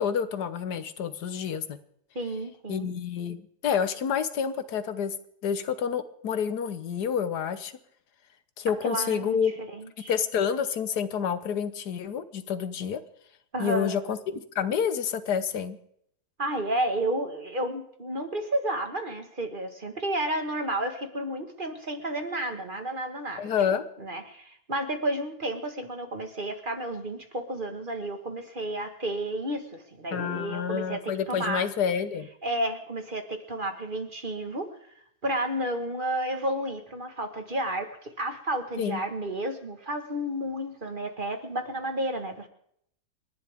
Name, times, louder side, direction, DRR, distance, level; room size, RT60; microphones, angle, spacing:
voice 1, 0.0-1.8 2.7-5.1 5.4-7.7 8.6-9.5 10.1-13.0 13.6-15.8 23.4-23.8 30.1-32.3 38.8-39.0, left 7 dB, 85° left, 12 dB, 1.6 m, -28 dB
voice 2, 2.1-2.9 8.8-10.1 13.5-13.9 16.4-23.4 24.0-31.7 32.4-34.7 35.2-42.5, right 1 dB, 35° right, 6 dB, 1.7 m, -31 dB
29.0 x 11.5 x 3.6 m, 0.71 s
omnidirectional pair, 1.7 m